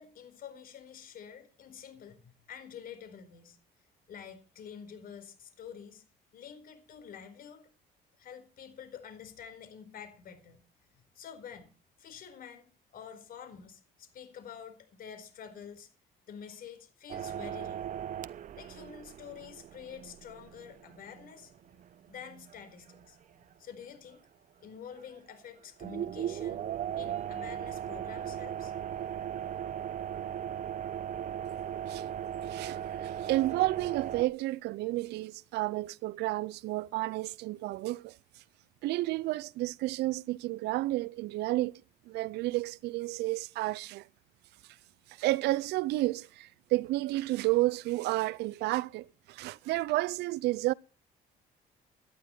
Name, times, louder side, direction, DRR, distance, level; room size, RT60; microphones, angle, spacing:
voice 1, 0.0-3.6 4.1-6.0 6.3-7.6 8.2-10.6 11.1-11.7 12.0-15.9 16.3-18.0 18.6-21.5 22.1-23.2 23.6-24.2 24.6-29.1, left 8 dB, 60° left, 4.6 m, -48 dB
sound 1, 17.1-23.1 23.4-23.5 25.0-25.3 25.8-34.2, right 10 dB, 50° right, 0.9 m, -38 dB
voice 2, 32.4-38.2 38.8-41.7 42.1-44.1 45.2-50.7, right 18 dB, 80° right, 0.7 m, -31 dB
18.0 x 12.0 x 4.5 m
cardioid pair, 110°, 17 cm